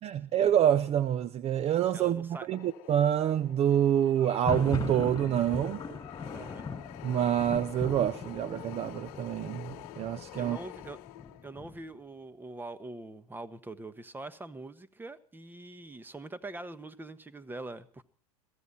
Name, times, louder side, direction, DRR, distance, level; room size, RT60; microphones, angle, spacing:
voice 1, 0.0-5.8 7.0-10.6, right 10 dB, 35° right, 0.7 m, -27 dB
voice 2, 1.9-2.5 6.3-6.7 10.4-11.0 11.4-18.0, right 2 dB, 10° right, 1.3 m, -43 dB
sound 1, 2.5-11.6, left 17 dB, 55° left, 1.0 m, -47 dB
Thunder, 4.2-12.0, left 5 dB, 15° left, 5.9 m, -40 dB
22.5 x 15.0 x 4.2 m
hypercardioid pair, 100°, 19 cm